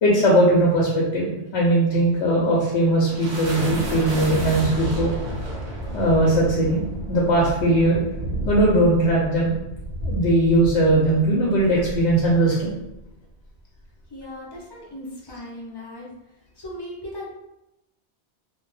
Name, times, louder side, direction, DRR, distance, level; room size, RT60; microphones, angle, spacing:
voice 1, 0.0-5.1 5.9-8.0 8.4-9.6 10.0-12.7, right 1 dB, 90° left, -4 dB, 0.9 m, -19 dB
sound 1, 2.5-13.1, right 1 dB, 75° right, 1.0 m, -31 dB
voice 2, 14.1-16.1 16.6-17.3, left 1 dB, 35° left, -4 dB, 0.4 m, -37 dB
2.5 x 2.2 x 3.1 m, 0.90 s
omnidirectional pair, 1.1 m